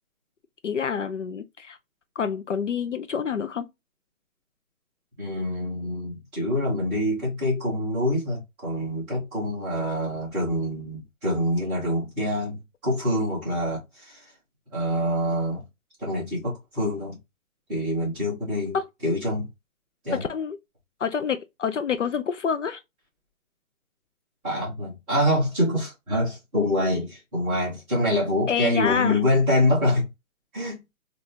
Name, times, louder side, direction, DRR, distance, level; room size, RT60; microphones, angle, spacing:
voice 1, 0.6-1.8 2.2-3.7 18.7-18.9 20.1-20.6 21.0-22.8 28.5-29.2, left 7 dB, 60° left, 0.5 m, -27 dB
voice 2, 5.2-14.2 14.7-15.6 16.0-17.2 17.7-18.8 19.0-19.5 20.0-20.2 24.4-30.1 30.5-30.8, left 1 dB, 5° right, 0.8 m, -25 dB
3.3 x 2.7 x 2.8 m
hypercardioid pair, 160°, 42 cm